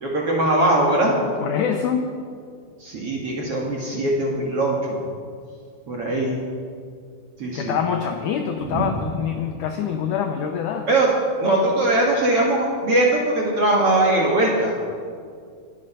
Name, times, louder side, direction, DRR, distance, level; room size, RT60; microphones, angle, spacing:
voice 1, 0.0-1.2 2.8-5.1 5.9-6.4 7.4-7.8 8.6-8.9 10.9-11.1 11.4-14.7, right 1 dB, 50° right, -2 dB, 1.9 m, -21 dB
voice 2, 1.2-2.1 7.6-10.9, left 7 dB, 85° left, 5 dB, 1.8 m, -25 dB
23.0 x 7.6 x 5.5 m, 2.2 s
omnidirectional pair, 4.6 m